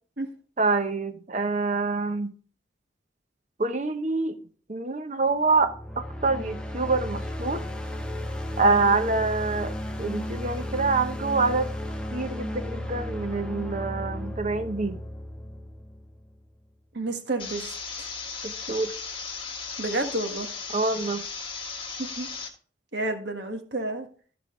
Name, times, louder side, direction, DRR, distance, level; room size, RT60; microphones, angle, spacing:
voice 1, 0.6-2.3 3.6-4.4 4.7-7.6 8.6-9.7 10.0-11.7 12.1-15.0 18.4-18.9 20.7-21.2, right 3 dB, 40° right, 0.8 m, -26 dB
sound 1, 5.4-16.5, left 1 dB, 5° left, 0.7 m, -34 dB
voice 2, 16.9-17.7 18.0-18.1 19.8-20.5 22.0-22.3 22.9-24.1, right 2 dB, 60° right, 1.5 m, -30 dB
sound 2, 17.4-22.5, left 5 dB, 25° left, 1.5 m, -36 dB
13.5 x 5.1 x 3.7 m
head